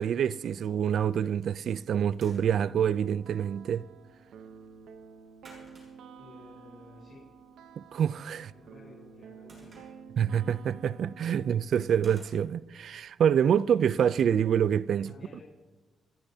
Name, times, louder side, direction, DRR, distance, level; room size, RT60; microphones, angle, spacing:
voice 1, 0.0-3.8 7.8-8.5 10.2-15.1, right 8 dB, 60° right, 0.4 m, -26 dB
sound 1, 1.7-14.5, right 2 dB, 40° right, 6.1 m, -61 dB
sound 2, 2.4-11.6, right 6 dB, 85° right, 0.8 m, -51 dB
voice 2, 6.2-7.3 8.5-9.9 11.4-11.5 15.0-15.4, left 3 dB, 35° left, 4.6 m, -53 dB
27.5 x 15.0 x 2.8 m
cardioid pair, 125°, 0 cm